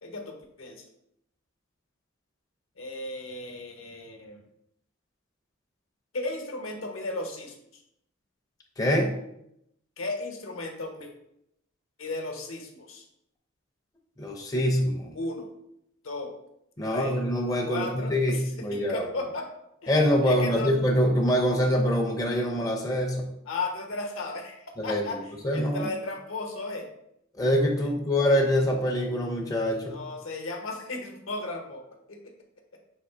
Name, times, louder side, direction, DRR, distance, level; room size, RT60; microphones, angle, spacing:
voice 1, 0.0-0.8 2.8-4.4 6.1-7.6 10.0-11.1 12.0-13.0 15.1-15.5 16.0-16.3 16.8-17.1 17.7-19.5 19.8-20.7 23.5-25.2 25.5-26.9 27.8-27.9 29.9-32.3, left 2 dB, 75° left, 3 dB, 0.8 m, -35 dB
voice 2, 8.8-9.1 14.2-15.2 16.8-19.1 19.9-23.3 24.8-25.0 25.3-25.9 27.4-30.0, equal, 15° left, 0 dB, 0.5 m, -25 dB
3.6 x 2.7 x 4.6 m, 0.79 s
head